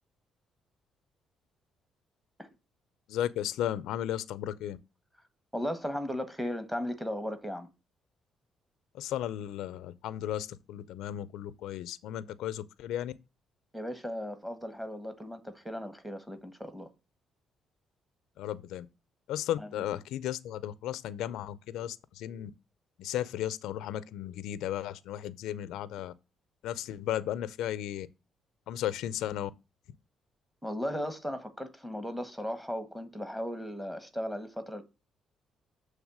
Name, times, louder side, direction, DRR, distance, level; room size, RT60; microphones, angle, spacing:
voice 1, 3.1-4.8 8.9-13.1 18.4-18.9 19.3-22.5 23.0-26.1 26.6-28.1 28.7-29.5, left 11 dB, 90° left, 0.4 m, -35 dB
voice 2, 5.5-7.7 13.7-16.9 19.6-19.7 30.6-34.8, equal, 5° right, 1.3 m, -36 dB
7.2 x 3.3 x 6.0 m
cardioid pair, 90°, 0 cm